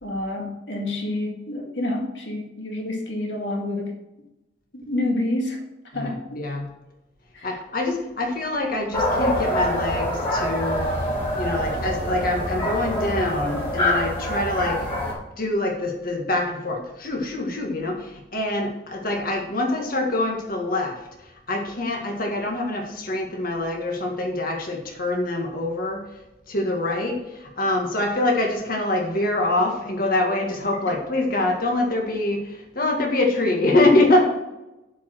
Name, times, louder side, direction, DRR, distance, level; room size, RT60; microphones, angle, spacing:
voice 1, 0.0-4.0 4.7-5.6 5.9-6.5 7.3-7.6, left 1 dB, 85° left, 1 dB, 1.9 m, -28 dB
voice 2, 5.9-6.7 7.4-10.9 11.4-14.8 15.4-21.0 21.5-26.0 26.5-34.2, left 2 dB, 55° left, 0 dB, 1.8 m, -24 dB
sound 1, 8.9-15.1, equal, 30° left, 4.2 m, -25 dB
12.0 x 5.1 x 6.1 m, 0.95 s
head